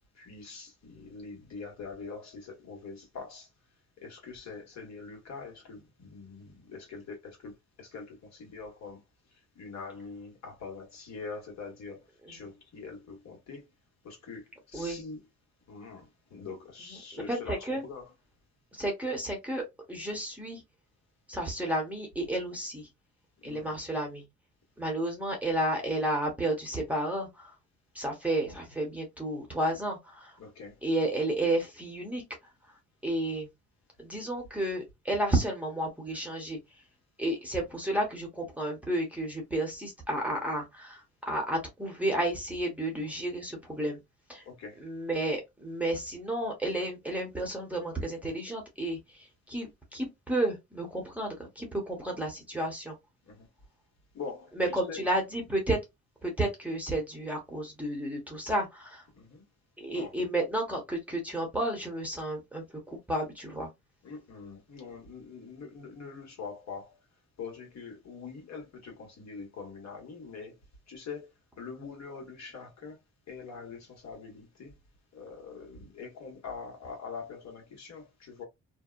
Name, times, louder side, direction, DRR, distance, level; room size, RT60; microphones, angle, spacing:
voice 1, 0.1-3.5 4.0-9.0 9.3-13.7 14.0-15.2 15.6-18.1 23.4-23.8 30.4-30.8 44.4-44.8 53.2-53.5 54.1-55.0 59.1-59.5 59.9-60.1 64.0-67.0 67.4-70.6 70.9-73.0 73.3-74.7 75.1-78.4, left 5 dB, 60° left, 1.5 m, -44 dB
voice 2, 17.1-17.8 18.7-20.6 21.3-22.9 23.4-24.2 24.8-27.5 27.9-30.4 30.8-32.2 33.0-33.5 34.0-36.6 37.2-44.0 44.3-44.4 44.8-53.0 54.6-55.8 56.2-59.0 59.8-63.7, right 1 dB, 5° right, 1.0 m, -32 dB
2.7 x 2.2 x 2.4 m
cardioid pair, 90°, 30 cm